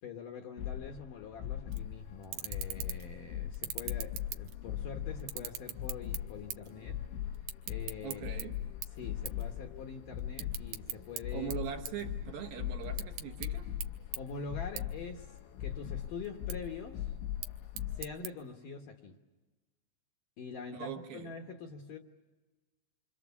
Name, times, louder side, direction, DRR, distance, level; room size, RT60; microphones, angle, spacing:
voice 1, 0.0-7.0 7.7-8.2 9.0-11.5 11.9-12.1 14.2-15.3 15.6-17.1 17.9-19.2 20.4-22.0, left 5 dB, 65° left, 3 dB, 2.3 m, -44 dB
sound 1, 0.6-18.0, left 11 dB, 80° left, 3.3 m, -40 dB
sound 2, 1.7-1.9 2.2-3.1 3.5-4.8 5.2-6.8 7.0-8.4 8.8-9.0 9.3-9.5 9.8-11.2 11.5-12.5 12.8-13.5 13.8-13.9 14.1-14.2 14.8-14.9 15.2-15.8 16.2-16.6 17.2-18.3, right 11 dB, 85° right, 3.5 m, -41 dB
voice 2, 8.0-8.6 11.3-13.7 20.7-21.3, right 9 dB, 65° right, 3 dB, 2.9 m, -41 dB
27.0 x 26.5 x 7.2 m, 1.2 s
omnidirectional pair, 5.3 m